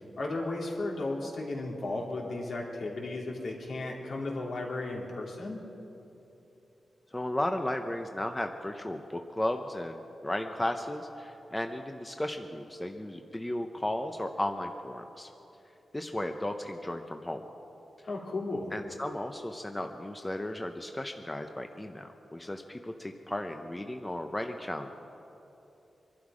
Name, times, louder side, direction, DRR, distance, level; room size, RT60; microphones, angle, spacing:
voice 1, 0.2-5.6 18.1-18.7, left 2 dB, 65° left, -2 dB, 2.8 m, -34 dB
voice 2, 7.1-15.3 15.9-17.4 18.7-24.9, left 1 dB, 15° left, 5 dB, 0.7 m, -35 dB
24.0 x 12.0 x 4.9 m, 2.9 s
wide cardioid pair, 140°, 0 cm